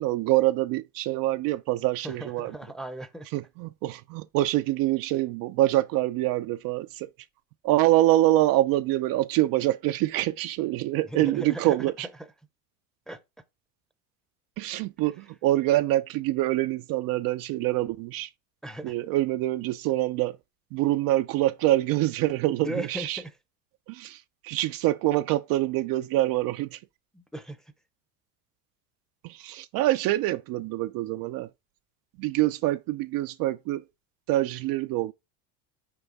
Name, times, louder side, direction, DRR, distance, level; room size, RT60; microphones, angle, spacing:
voice 1, 0.0-2.6 3.3-7.1 7.6-12.1 14.6-18.3 18.8-20.4 20.7-23.2 23.9-26.8 29.2-31.5 32.2-33.8 34.3-35.1, right 16 dB, 50° right, 0.5 m, -25 dB
voice 2, 2.0-3.3 11.1-11.8 13.1-13.2 18.6-19.0 22.6-23.3 27.1-27.6, right 1 dB, ahead, 0.8 m, -36 dB
6.0 x 4.7 x 4.0 m
supercardioid pair, 95°, 46 cm